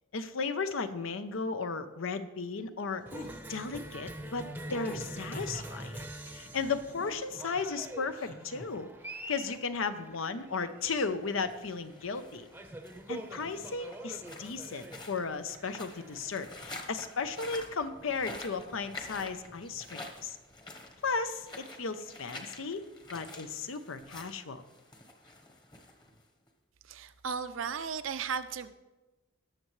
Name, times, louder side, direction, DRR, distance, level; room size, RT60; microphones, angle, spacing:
voice 1, 0.1-3.0 3.5-8.9 9.3-12.5 13.1-20.4 21.0-24.6, left 4 dB, 80° left, 10 dB, 0.7 m, -35 dB
sound 1, 3.1-3.3 4.7-5.9 6.6-7.6 8.1-8.6, left 1 dB, 45° left, 1.1 m, -44 dB
Cheering, 3.1-18.2, right 1 dB, 10° right, 0.7 m, -45 dB
sound 2, 10.8-26.5, left 2 dB, 20° left, 1.1 m, -48 dB
voice 2, 26.8-28.7, right 6 dB, 75° right, 11 dB, 0.6 m, -35 dB
19.0 x 6.6 x 3.2 m, 1.1 s
head